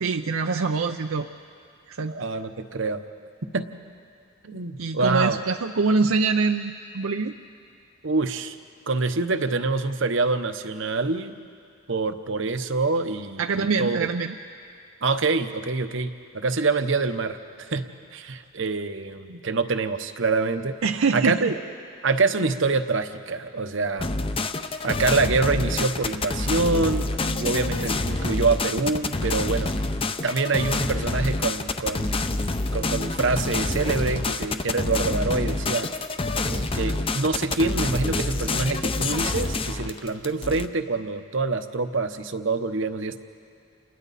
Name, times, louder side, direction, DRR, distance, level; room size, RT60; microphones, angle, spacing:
voice 1, 0.0-1.3 1.9-2.2 4.8-7.4 13.4-14.3 20.8-21.5, right 4 dB, 85° right, 6 dB, 0.6 m, -24 dB
voice 2, 2.1-3.0 3.5-3.7 4.4-5.4 8.0-8.6 8.9-11.3 11.9-14.1 15.0-20.8 21.1-21.5 22.0-24.2 24.8-29.7 30.2-32.4 32.7-35.9 36.4-43.2, right 3 dB, 65° right, 9 dB, 1.0 m, -26 dB
sound 1, 24.0-40.7, left 2 dB, 25° left, 0.6 m, -27 dB
30.0 x 28.0 x 4.2 m, 2.3 s
head